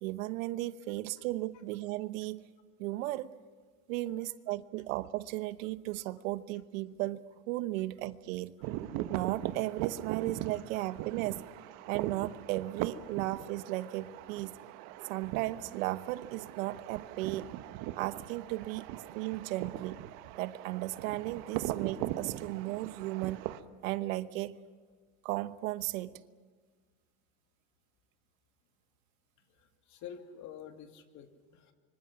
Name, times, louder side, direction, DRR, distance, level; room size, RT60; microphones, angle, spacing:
voice 1, 0.0-2.4 2.8-3.3 3.9-8.5 9.1-11.5 11.9-14.6 15.0-17.5 18.0-18.9 19.1-20.0 20.4-23.5 23.8-24.6 25.2-26.1, right 17 dB, 80° right, 1.0 m, -35 dB
sound 1, 8.6-23.6, right 14 dB, 60° right, 1.2 m, -40 dB
voice 2, 29.5-31.7, left 8 dB, 45° left, 2.6 m, -49 dB
25.0 x 25.0 x 6.1 m
supercardioid pair, 130°, 40 cm